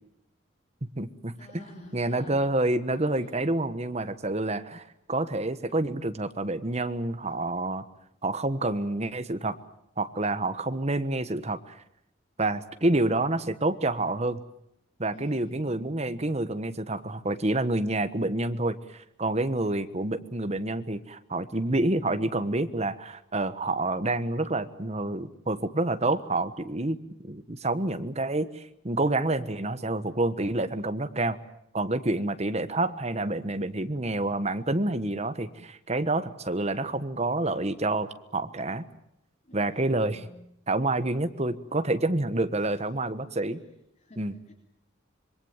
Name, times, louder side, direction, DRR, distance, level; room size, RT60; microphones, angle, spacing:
voice 1, 0.8-1.6 1.9-4.8 5.1-7.8 8.2-9.6 10.0-11.8 12.4-14.4 15.0-27.0 27.2-31.4 31.7-38.8 39.5-40.3 40.7-43.6 44.2-44.3, right 2 dB, 35° right, 10 dB, 1.3 m, -28 dB
voice 2, 1.4-2.5 3.1-3.5 15.1-15.8 39.4-40.4 44.0-44.5, left 1 dB, 35° left, 2 dB, 3.4 m, -50 dB
26.0 x 22.5 x 7.4 m, 0.79 s
head